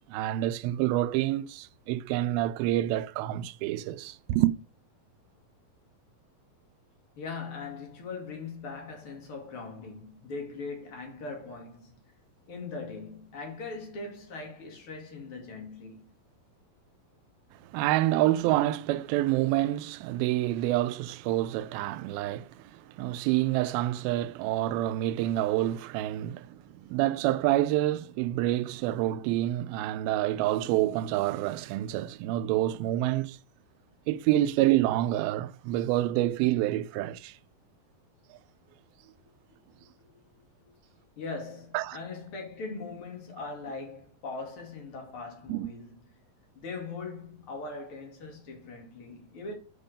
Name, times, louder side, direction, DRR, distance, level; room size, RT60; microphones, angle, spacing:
voice 1, 0.1-4.5 17.7-33.4 34.1-37.4 41.7-42.0 45.5-45.7, right 15 dB, 85° right, 2.4 m, -27 dB
voice 2, 7.2-12.0 12.5-16.1 39.2-39.3 40.1-40.2 40.6-40.7 41.2-46.0 46.5-49.5, left 3 dB, 40° left, 2.9 m, -40 dB
8.1 x 5.4 x 5.0 m
omnidirectional pair, 4.2 m